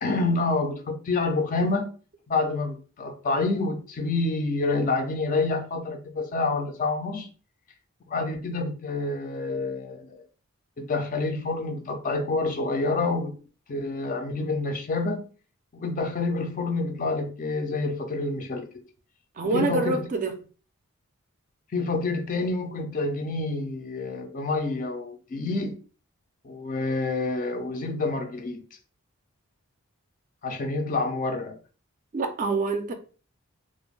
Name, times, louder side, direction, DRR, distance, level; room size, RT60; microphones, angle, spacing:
voice 1, 0.0-1.9 2.3-7.3 8.1-10.2 10.8-13.4 13.7-15.3 15.7-18.8 19.4-20.1 21.7-25.8 26.4-28.6 30.4-31.6, left 3 dB, 35° left, 0.4 m, -28 dB
voice 2, 19.4-20.3 32.1-32.9, right 3 dB, 35° right, 0.3 m, -26 dB
2.4 x 2.1 x 3.1 m
head